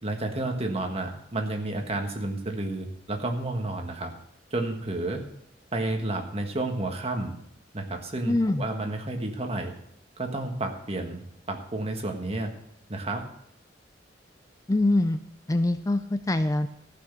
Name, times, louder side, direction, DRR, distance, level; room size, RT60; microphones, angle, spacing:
voice 1, 0.0-4.1 4.5-5.3 5.7-7.3 7.7-9.7 10.2-11.2 11.5-12.5 12.9-13.2, right 2 dB, 35° right, 4 dB, 1.5 m, -31 dB
voice 2, 8.3-8.6 14.7-15.2 15.5-16.7, left 2 dB, 20° left, 10 dB, 0.4 m, -24 dB
14.0 x 6.1 x 6.9 m, 0.74 s
head